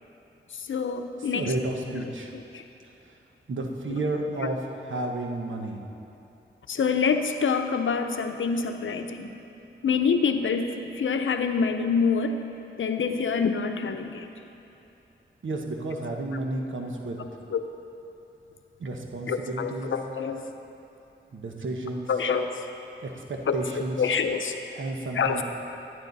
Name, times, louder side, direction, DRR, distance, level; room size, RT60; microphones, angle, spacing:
voice 1, 0.7-1.4 6.7-9.3 9.8-12.4 12.8-14.3 17.5-17.6 19.3-20.4 22.1-22.5 23.5-23.6 24.0-24.5 25.2-25.4, left 5 dB, 80° left, 7 dB, 0.7 m, -26 dB
voice 2, 1.2-2.4 3.1-3.2 3.5-5.8 15.4-17.2 18.8-19.9 21.3-22.1 23.0-24.1 24.7-25.4, right 2 dB, 75° right, 2 dB, 1.1 m, -32 dB
12.0 x 10.5 x 4.0 m, 2.9 s
cardioid pair, 65°, 20 cm